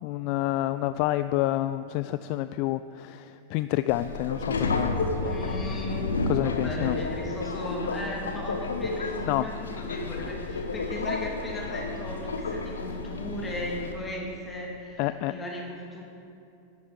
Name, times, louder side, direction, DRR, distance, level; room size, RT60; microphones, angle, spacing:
voice 1, 0.0-5.0 6.3-7.0 9.3-9.5 15.0-15.3, left 15 dB, 45° left, 12 dB, 0.3 m, -28 dB
Subway metro underground, 3.9-13.9, left 3 dB, 70° left, 1.2 m, -31 dB
voice 2, 5.2-16.0, left 1 dB, 15° left, -1 dB, 2.8 m, -37 dB
11.5 x 10.5 x 6.5 m, 2.7 s
figure-of-eight pair, 90°, 0 cm